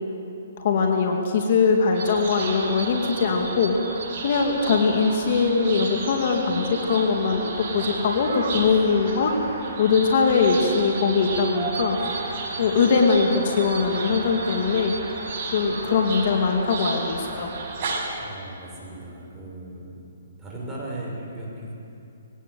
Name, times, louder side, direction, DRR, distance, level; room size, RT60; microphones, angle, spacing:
voice 1, 0.6-3.8 4.2-9.3 9.8-12.0 12.6-15.0 15.5-17.5, left 5 dB, 50° left, 2 dB, 2.4 m, -21 dB
sound 1, 1.9-18.1, right 3 dB, 40° right, 6.1 m, -33 dB
voice 2, 18.2-19.9 20.4-21.7, right 1 dB, 10° right, -5 dB, 6.1 m, -37 dB
20.5 x 18.0 x 7.9 m, 2.8 s
hypercardioid pair, 150°, 0 cm